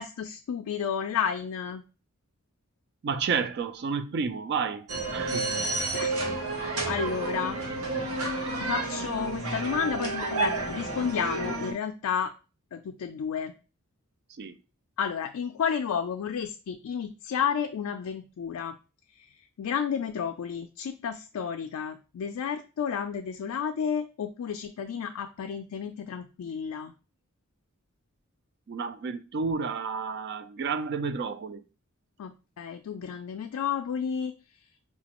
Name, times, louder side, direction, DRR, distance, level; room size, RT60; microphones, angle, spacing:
voice 1, 0.0-1.8 5.9-6.1 6.6-12.3 12.7-13.5 15.0-18.7 19.2-19.3 19.6-26.9 32.2-34.3, left 7 dB, 80° left, 0.3 m, -32 dB
voice 2, 3.0-5.5 14.3-14.6 28.7-31.6, right 5 dB, 50° right, 0.3 m, -31 dB
sound 1, 4.9-11.7, right 3 dB, 70° right, 0.8 m, -30 dB
4.9 x 2.3 x 2.9 m
head